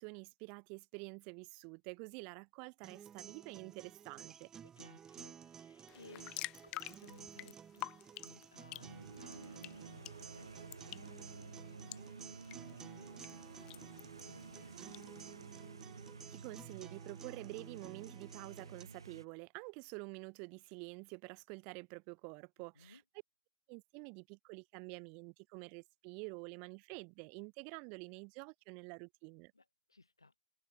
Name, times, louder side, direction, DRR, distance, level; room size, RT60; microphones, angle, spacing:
voice 1, 0.0-4.5 16.3-23.0 23.7-29.5, right 36 dB, 45° right, 1.7 m, -48 dB
sound 1, 2.8-18.8, right 8 dB, 20° right, 4.4 m, -54 dB
voice 2, 4.6-7.9 8.2-15.3 22.7-23.0 29.5-30.4, left 3 dB, 85° left, 4.7 m, -61 dB
sound 2, 5.9-15.0, left 19 dB, 40° left, 2.8 m, -50 dB
sound 3, 8.8-19.2, right 4 dB, 80° right, 0.5 m, -52 dB
figure-of-eight pair, 95°, 2 cm